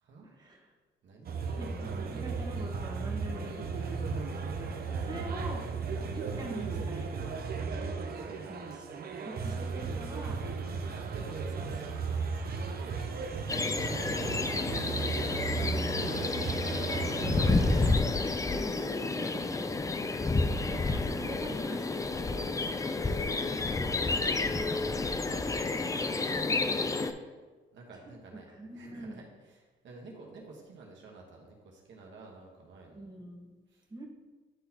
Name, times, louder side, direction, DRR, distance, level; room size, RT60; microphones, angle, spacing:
voice 1, 0.2-0.7 1.6-4.3 5.1-5.6 6.1-7.1 9.2-10.4 15.5-16.1 17.2-17.7 18.6-19.7 20.7-22.9 28.5-29.2 32.9-33.6 33.9-34.1, right 2 dB, 20° right, -1 dB, 1.4 m, -43 dB
voice 2, 1.0-1.7 3.6-5.5 5.9-6.6 7.3-7.5 8.1-9.1 10.6-13.6 13.9-14.6 23.3-26.4 27.7-33.0 33.7-33.9, right 3 dB, 70° right, -1 dB, 1.2 m, -51 dB
sound 1, 1.3-18.0, right 4 dB, 50° right, 0.7 m, -35 dB
sound 2, 13.5-27.1, left 3 dB, 15° left, 0.4 m, -30 dB
10.0 x 3.8 x 2.9 m, 1.3 s
cardioid pair, 90°, 20 cm